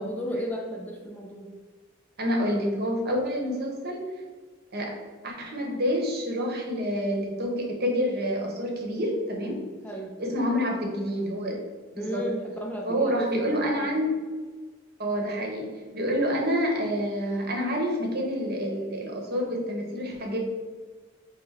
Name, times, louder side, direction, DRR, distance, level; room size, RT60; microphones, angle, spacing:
voice 1, 0.0-1.5 9.8-10.2 12.0-13.7, equal, 10° left, 0 dB, 0.3 m, -34 dB
voice 2, 2.2-4.1 4.7-4.9 5.2-9.6 10.2-11.6 11.9-12.2 12.8-14.2 15.0-20.4, equal, 50° right, 0 dB, 0.9 m, -28 dB
5.6 x 2.1 x 4.2 m, 1.4 s
head